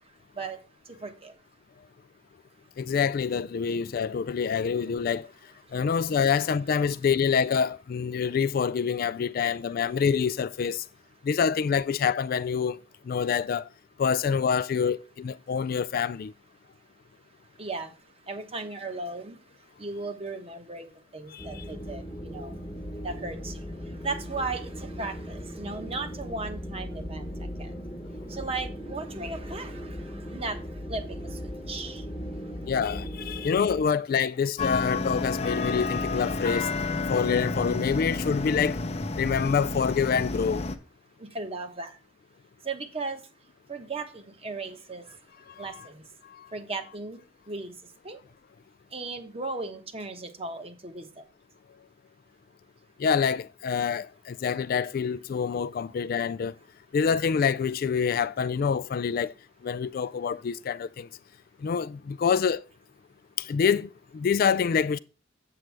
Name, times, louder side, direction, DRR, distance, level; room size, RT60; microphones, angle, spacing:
voice 1, 1.0-1.3 17.6-17.9 18.3-19.4 19.8-22.6 23.0-23.6 24.0-27.3 27.6-27.7 28.3-30.6 30.9-31.4 31.7-32.0 41.2-42.0 42.6-43.2 43.7-45.0 45.6-46.0 46.5-47.2 47.5-47.7 48.0-48.2 48.9-51.1, right 3 dB, 30° right, 1.1 m, -36 dB
voice 2, 2.8-5.3 5.7-10.8 11.2-12.8 13.1-13.7 14.0-16.3 21.3-21.6 32.6-36.7 37.1-38.8 39.2-40.6 45.6-45.7 46.3-46.5 53.0-56.5 56.9-59.3 59.6-61.1 61.6-62.6 63.4-65.0, left 6 dB, 50° left, 0.3 m, -26 dB
sound 1, 21.4-33.8, equal, 15° left, 1.1 m, -38 dB
sound 2, 34.6-40.8, left 3 dB, 35° left, 0.7 m, -30 dB
7.8 x 7.5 x 3.4 m
head